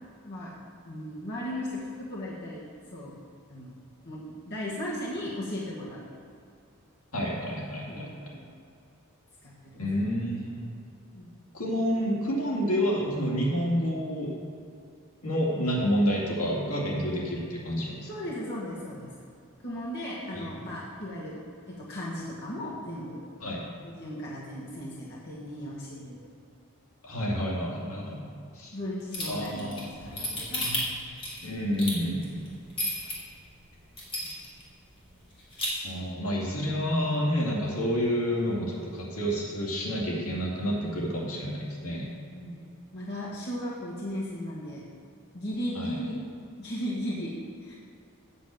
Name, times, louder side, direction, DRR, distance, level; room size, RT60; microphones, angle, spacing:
voice 1, 0.8-3.1 3.5-3.8 4.0-6.1 7.9-8.5 9.4-9.8 11.1-11.4 18.1-19.1 19.6-21.4 21.7-23.2 23.8-26.2 28.7-30.8 34.2-34.3 42.3-42.7 42.9-44.9 45.3-46.2 46.6-47.8, equal, 45° left, -6 dB, 1.5 m, -36 dB
voice 2, 7.1-8.1 9.8-10.6 11.5-14.3 15.2-18.1 20.3-20.5 23.4-23.6 27.0-28.3 28.6-28.8 29.3-30.8 31.4-32.4 35.8-42.1 45.7-46.0, equal, 75° left, -3 dB, 2.5 m, -29 dB
sound 1, 29.1-33.1 33.6-33.7 34.0-34.6 34.9-35.0 35.3-35.7, left 1 dB, 25° left, 2.7 m, -32 dB
8.2 x 6.6 x 7.7 m, 2.5 s
head